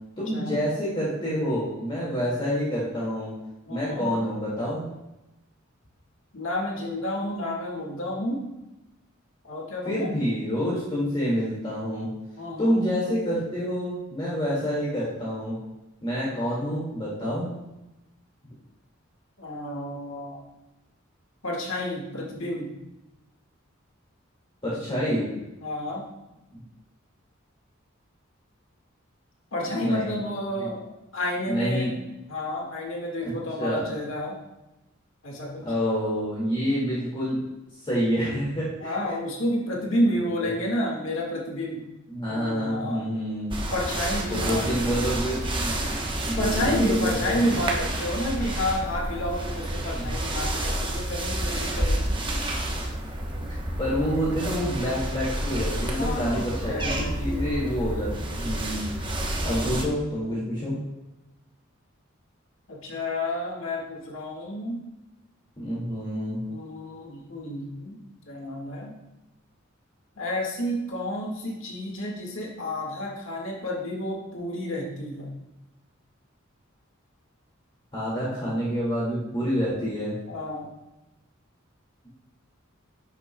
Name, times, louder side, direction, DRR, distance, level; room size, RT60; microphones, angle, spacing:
voice 1, 0.2-3.3 3.7-4.9 9.8-12.1 12.6-15.6 16.0-17.5 24.6-25.3 29.7-30.2 30.6-30.7 31.5-31.9 33.2-33.3 33.6-33.9 35.6-37.4 37.8-38.9 42.1-43.6 44.3-47.6 50.0-50.1 53.8-58.9 59.4-60.8 65.6-66.4 77.9-80.1, equal, 25° left, -8 dB, 2.0 m, -27 dB
voice 2, 3.7-4.1 6.3-8.4 9.4-10.1 12.4-12.9 19.4-20.4 21.4-22.7 25.6-26.0 29.5-31.9 32.3-34.3 35.2-35.6 38.8-41.8 42.2-43.1 43.7-45.0 46.4-52.2 56.0-57.5 62.7-64.8 66.4-68.0 68.3-68.9 70.2-75.3 80.3-80.7, left 1 dB, 75° left, -2 dB, 1.7 m, -30 dB
sound 1, 43.5-59.8, right 1 dB, 25° right, 0.9 m, -29 dB
10.5 x 7.5 x 2.2 m, 0.97 s
head